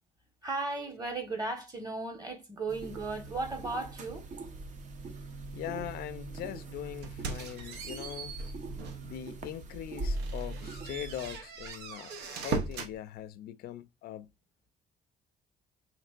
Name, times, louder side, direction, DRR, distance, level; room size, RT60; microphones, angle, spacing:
voice 1, 0.4-4.3, right 3 dB, 20° right, 1.3 m, -36 dB
sound 1, 2.7-11.4, right 2 dB, 45° right, 0.8 m, -41 dB
voice 2, 5.5-8.3 9.0-14.3, left 12 dB, 70° left, 0.4 m, -41 dB
sound 2, 7.0-9.1 9.6-9.7 10.1-13.0, right 4 dB, 85° right, 0.7 m, -38 dB
5.2 x 3.1 x 2.4 m
cardioid pair, 110°, 17 cm